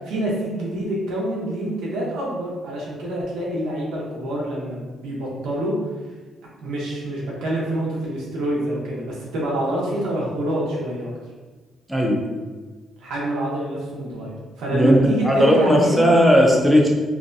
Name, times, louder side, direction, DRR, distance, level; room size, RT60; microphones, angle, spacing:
voice 1, 0.0-5.8 6.6-11.1 13.0-16.2, right 1 dB, 90° right, -5 dB, 0.8 m, -26 dB
voice 2, 11.9-12.2 14.7-16.9, equal, 5° right, -1 dB, 0.6 m, -16 dB
2.6 x 2.2 x 2.5 m, 1.3 s
cardioid pair, 90°, 0 cm